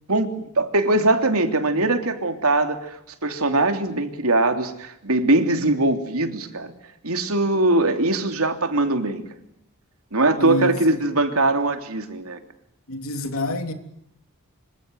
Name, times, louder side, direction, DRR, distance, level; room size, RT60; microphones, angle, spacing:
voice 1, 0.1-6.7 7.0-9.2 10.1-12.4, right 2 dB, 75° right, 3.2 m, -21 dB
voice 2, 10.4-11.0 12.9-13.7, left 2 dB, 70° left, 3.4 m, -27 dB
26.5 x 25.5 x 8.1 m
head